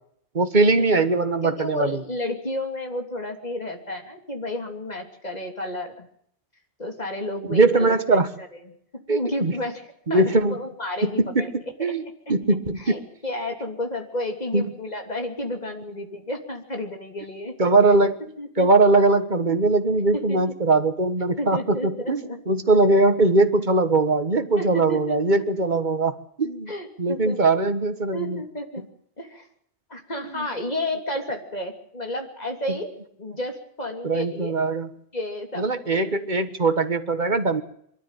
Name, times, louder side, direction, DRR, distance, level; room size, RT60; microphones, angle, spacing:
voice 1, 0.3-2.0 7.5-8.3 9.1-9.5 10.1-10.6 11.0-11.5 11.8-12.0 12.3-12.8 14.5-14.7 17.6-18.2 18.6-26.7 27.0-28.4 30.3-30.5 34.0-34.9 35.6-37.6, right 3 dB, 45° right, 10 dB, 1.7 m, -21 dB
voice 2, 1.4-6.1 6.8-8.6 8.9-9.8 10.1-11.5 12.3-12.4 12.8-17.6 18.4-18.7 20.1-20.4 21.4-22.4 22.7-22.8 24.6-25.2 26.7-27.4 28.1-28.8 29.2-29.5 29.9-34.6 35.1-36.1, left 1 dB, 40° left, 4 dB, 3.2 m, -32 dB
23.5 x 13.0 x 9.1 m, 0.68 s
omnidirectional pair, 1.1 m